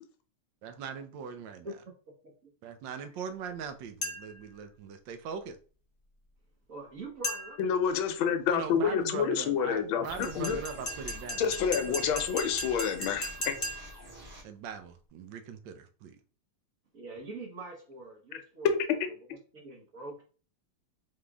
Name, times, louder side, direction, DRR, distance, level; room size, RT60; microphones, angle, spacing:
voice 1, 0.6-1.7 2.6-5.6 8.5-11.4 11.7-12.1 14.4-16.2, right 6 dB, 70° right, 1.2 m, -41 dB
sound 1, 4.0-4.5 7.2-7.7 10.2-14.1, left 1 dB, 40° left, 0.4 m, -37 dB
voice 2, 6.7-8.1 16.9-18.7 19.5-20.2, right 2 dB, 50° right, 1.1 m, -44 dB
voice 3, 7.6-10.6 11.4-13.6 18.6-18.8, left 7 dB, 75° left, 1.5 m, -28 dB
sound 2, 10.0-14.4, equal, 30° right, 1.7 m, -46 dB
3.7 x 3.6 x 3.4 m
omnidirectional pair, 2.4 m